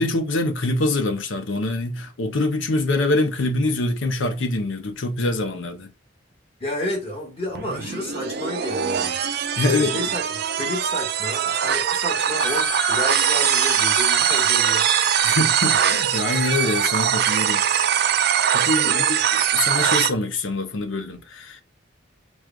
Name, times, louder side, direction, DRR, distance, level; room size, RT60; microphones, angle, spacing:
voice 1, 0.0-5.9 9.6-10.1 15.2-17.8 18.5-19.1 19.3-21.6, left 2 dB, 80° left, 0.7 m, -24 dB
voice 2, 6.6-9.1 9.6-10.3 10.5-14.9 18.8-19.2, left 1 dB, 30° left, 1.6 m, -31 dB
sound 1, 7.5-20.1, right 9 dB, 55° right, 0.4 m, -22 dB
sound 2, 12.4-16.7, left 3 dB, 10° left, 0.9 m, -32 dB
6.2 x 2.3 x 2.3 m
head